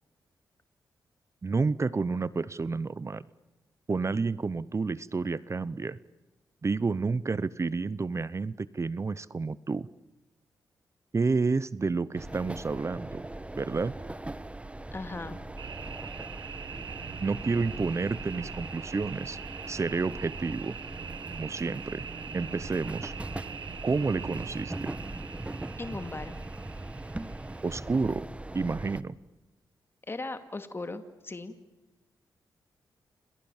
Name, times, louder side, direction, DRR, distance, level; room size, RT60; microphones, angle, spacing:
voice 1, 1.4-3.2 3.9-6.0 6.6-9.9 11.1-13.3 13.6-14.0 17.2-19.4 19.7-20.8 21.4-22.0 22.3-23.1 23.8-24.9 27.6-28.3 28.5-29.2, right 4 dB, 40° right, 19 dB, 0.9 m, -30 dB
sound 1, 12.1-29.0, right 1 dB, 15° right, 1.2 m, -40 dB
voice 2, 14.9-15.4 25.8-26.3 30.1-31.5, left 3 dB, 30° left, 9 dB, 2.4 m, -37 dB
sound 2, 15.6-28.2, right 7 dB, 70° right, 1.2 m, -43 dB
29.0 x 26.5 x 7.3 m, 1.0 s
cardioid pair, 60°, 8 cm